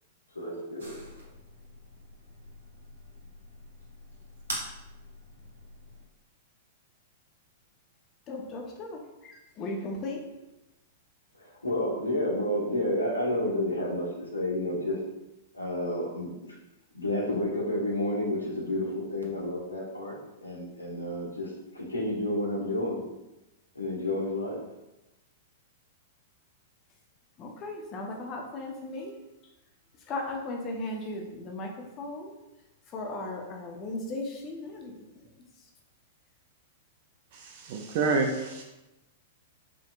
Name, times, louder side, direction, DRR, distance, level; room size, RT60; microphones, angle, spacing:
voice 1, 0.3-1.0 11.4-15.0 15.5-16.5 16.9-23.1 23.7-24.6, left 1 dB, 85° left, -2 dB, 1.1 m, -30 dB
sound 1, 0.8-6.1, right 1 dB, 75° right, 1.4 m, -44 dB
voice 2, 8.3-10.2 27.4-29.1 30.1-32.3 32.9-35.3 35.6-35.7, left 2 dB, 35° left, 1 dB, 0.8 m, -37 dB
voice 3, 37.4-38.6, right 4 dB, 50° right, 2 dB, 0.5 m, -28 dB
5.0 x 3.6 x 2.4 m, 0.98 s
figure-of-eight pair, 100°, 0 cm